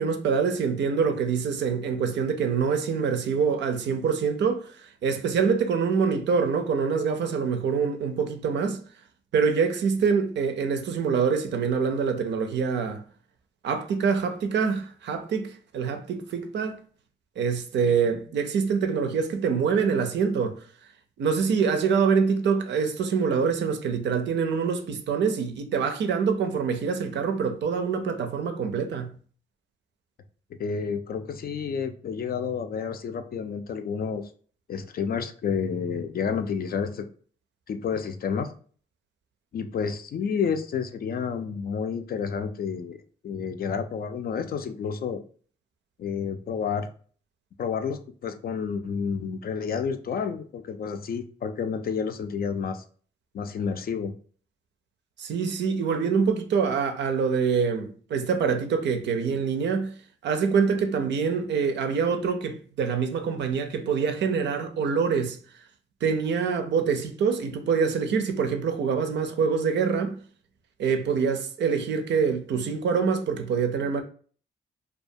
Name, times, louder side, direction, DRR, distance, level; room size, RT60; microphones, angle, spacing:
voice 1, 0.0-8.8 9.3-13.0 13.6-16.8 17.4-20.6 21.2-29.2 55.2-59.9 60.2-65.4 66.0-70.2 70.8-74.0, right 6 dB, 65° right, 0.5 m, -25 dB
voice 2, 30.6-34.3 34.7-37.1 37.7-38.5 39.5-43.0 43.2-45.2 46.0-46.9 47.6-52.8 53.3-54.1, left 6 dB, 50° left, 0.4 m, -30 dB
2.3 x 2.3 x 2.6 m
supercardioid pair, 50°, 19 cm